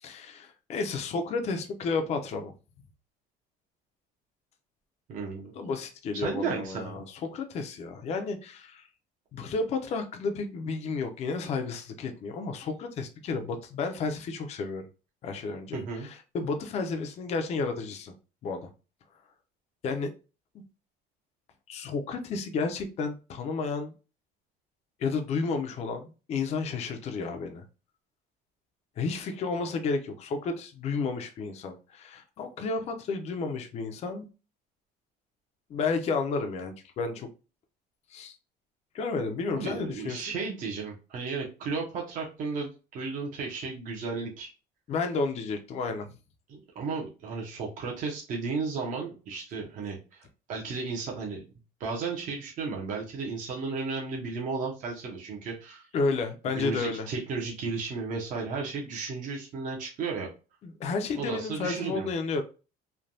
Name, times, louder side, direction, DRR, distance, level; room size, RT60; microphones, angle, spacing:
voice 1, 0.0-2.5 5.6-7.0 7.3-8.9 9.3-14.9 15.2-18.1 18.4-18.7 19.8-20.1 20.5-20.6 21.7-23.9 25.0-27.6 29.0-34.3 35.7-37.3 38.1-38.4 38.9-40.3 44.9-46.1 55.9-57.1 60.6-62.4, left 4 dB, 40° left, 0.5 m, -32 dB
voice 2, 5.1-5.5 6.1-7.0 15.7-16.1 39.6-44.5 46.5-51.4 51.8-55.9 56.5-60.3 61.2-62.1, right 4 dB, 45° right, 0.8 m, -34 dB
3.2 x 2.2 x 2.6 m
cardioid pair, 140°, 18 cm